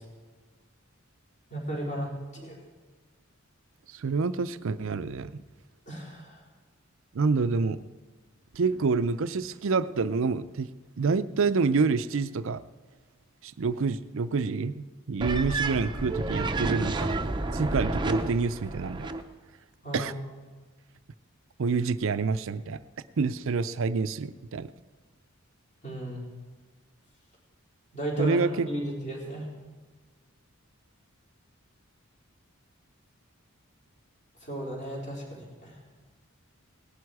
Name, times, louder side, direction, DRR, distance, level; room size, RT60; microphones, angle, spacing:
voice 1, 1.5-2.6 5.9-6.4 19.8-20.1 25.8-26.2 27.9-29.5 34.4-35.8, right 1 dB, 35° left, -3 dB, 3.7 m, -35 dB
voice 2, 3.9-5.4 7.1-7.8 8.5-10.7 11.0-12.6 13.4-17.1 17.5-19.1 19.9-20.1 21.6-22.8 23.2-24.7 28.2-28.7, right 4 dB, 65° right, 14 dB, 0.5 m, -27 dB
sound 1, 15.2-19.2, right 2 dB, 20° right, 0.7 m, -30 dB
18.0 x 11.0 x 4.8 m, 1.4 s
head